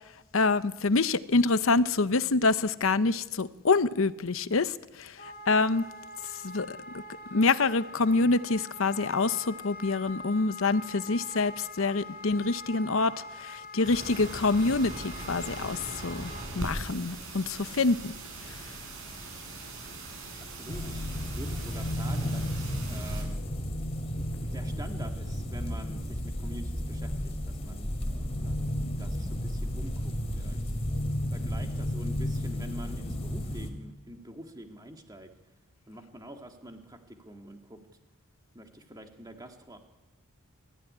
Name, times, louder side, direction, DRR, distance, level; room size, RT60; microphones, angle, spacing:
voice 1, 0.3-5.2 5.5-5.8 6.4-7.0 7.3-13.1 13.4-18.1, left 3 dB, 65° left, 14 dB, 0.8 m, -26 dB
Wind instrument woodwind instrument, 5.2-16.5, left 2 dB, 45° left, 3.0 m, -44 dB
sound 1, 13.8-23.2, right 2 dB, 60° right, 7.1 m, -41 dB
voice 2, 20.5-23.4 24.1-24.2 24.5-27.9 28.4-30.7 31.3-35.3 35.9-37.8 38.5-39.8, right 1 dB, 15° right, 4 dB, 2.1 m, -46 dB
sound 2, 20.7-33.7, equal, 30° left, 2.7 m, -33 dB
23.0 x 14.0 x 9.9 m, 1.1 s
head